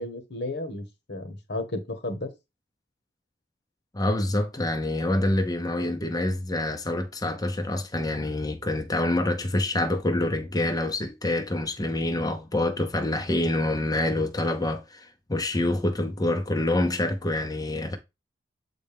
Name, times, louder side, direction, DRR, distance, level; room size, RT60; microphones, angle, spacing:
voice 1, 0.0-2.3, left 2 dB, 65° left, 1.4 m, -33 dB
voice 2, 3.9-18.0, left 1 dB, 20° left, 0.7 m, -26 dB
7.7 x 4.4 x 3.5 m
head